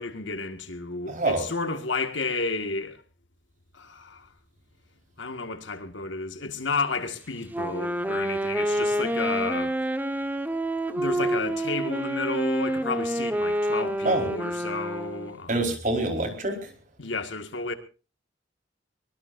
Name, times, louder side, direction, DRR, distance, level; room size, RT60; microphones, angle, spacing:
voice 1, 0.0-3.0 3.7-4.3 5.2-9.8 10.9-15.6 17.0-17.7, left 3 dB, 75° left, 1.9 m, -31 dB
voice 2, 1.1-1.4 14.0-14.3 15.5-16.7, right 2 dB, 40° right, 4.6 m, -26 dB
Wind instrument woodwind instrument, 7.5-15.4, right 1 dB, 10° right, 1.3 m, -28 dB
23.5 x 21.5 x 2.7 m
head